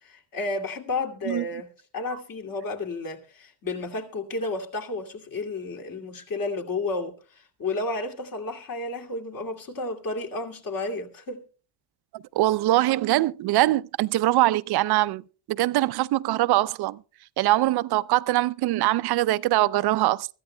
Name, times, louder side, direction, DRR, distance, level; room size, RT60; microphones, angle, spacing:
voice 1, 0.0-11.4, left 2 dB, 50° left, 2.6 m, -32 dB
voice 2, 12.1-15.2 15.5-17.0 17.4-20.3, right 16 dB, 65° right, 0.5 m, -22 dB
24.0 x 13.5 x 2.2 m
cardioid pair, 120°, 41 cm